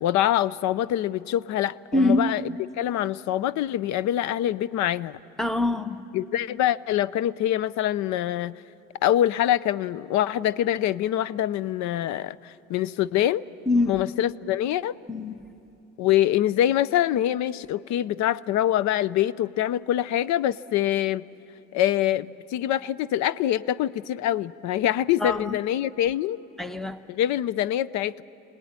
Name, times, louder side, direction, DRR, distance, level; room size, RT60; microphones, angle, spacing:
voice 1, 0.0-5.2 6.1-8.6 9.0-13.4 13.9-14.9 16.0-21.2 21.7-26.4 27.1-28.2, left 12 dB, 65° left, 19 dB, 0.6 m, -25 dB
voice 2, 1.9-2.3 5.4-6.0 13.7-14.0 15.1-15.4 25.2-25.5 26.6-27.0, left 2 dB, ahead, 10 dB, 0.9 m, -24 dB
26.5 x 19.0 x 9.5 m, 2.8 s
cardioid pair, 115°, 31 cm